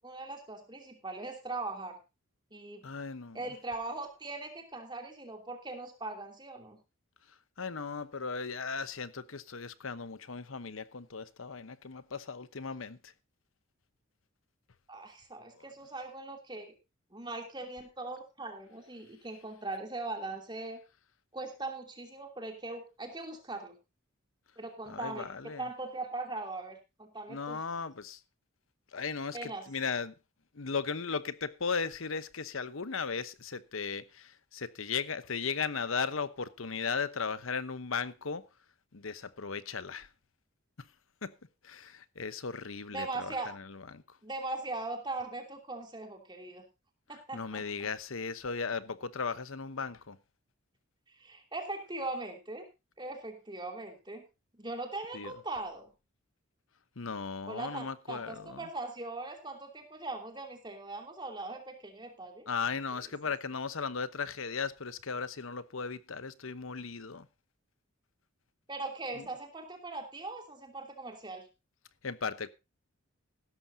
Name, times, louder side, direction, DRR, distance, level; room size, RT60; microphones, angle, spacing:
voice 1, 0.0-2.0 2.5-2.8 3.3-6.8 14.9-16.7 17.1-20.8 21.3-23.8 24.6-27.6 29.3-29.7 42.9-43.5 44.2-46.6 47.1-47.7 51.1-52.6 53.0-54.2 54.5-55.9 57.5-62.5 62.9-63.1 68.7-71.5, right 2 dB, 20° right, 2.9 m, -40 dB
voice 2, 2.8-3.4 7.6-13.0 15.6-15.7 24.9-25.6 27.3-28.2 28.9-30.1 30.5-38.5 38.9-40.1 41.2-41.3 41.6-44.0 47.3-50.2 55.1-55.3 57.0-58.7 62.5-67.3 69.2-69.3 72.0-72.5, left 5 dB, 75° left, 1.0 m, -36 dB
16.0 x 13.0 x 2.7 m
head